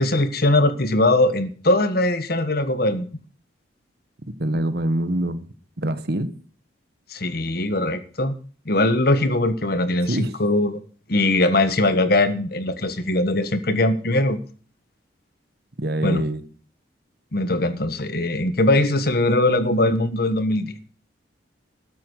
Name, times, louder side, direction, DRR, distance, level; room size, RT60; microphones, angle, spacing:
voice 1, 0.0-3.1 7.1-8.3 8.6-10.8 11.1-14.4 16.0-16.2 17.3-20.7, left 2 dB, 50° left, 11 dB, 1.4 m, -21 dB
voice 2, 4.4-5.5 5.8-6.3 10.0-10.4 15.8-16.4, right 1 dB, 55° right, 11 dB, 1.2 m, -24 dB
13.0 x 10.0 x 6.5 m, 0.42 s
head